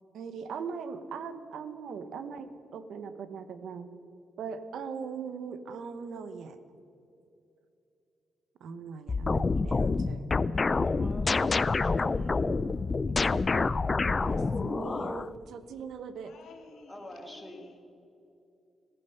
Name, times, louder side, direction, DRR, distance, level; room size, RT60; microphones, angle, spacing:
voice 1, 0.1-3.9 4.4-6.6 8.6-10.3 14.2-16.3, right 5 dB, 75° right, 11 dB, 1.0 m, -40 dB
sound 1, 9.1-15.3, left 4 dB, 25° left, 0.4 m, -27 dB
voice 2, 10.8-12.7 16.9-17.6, left 1 dB, ahead, 1 dB, 2.2 m, -46 dB
voice 3, 16.2-17.8, left 4 dB, 85° left, 0 dB, 2.5 m, -53 dB
14.5 x 14.5 x 5.8 m, 2.8 s
cardioid pair, 140°, 0 cm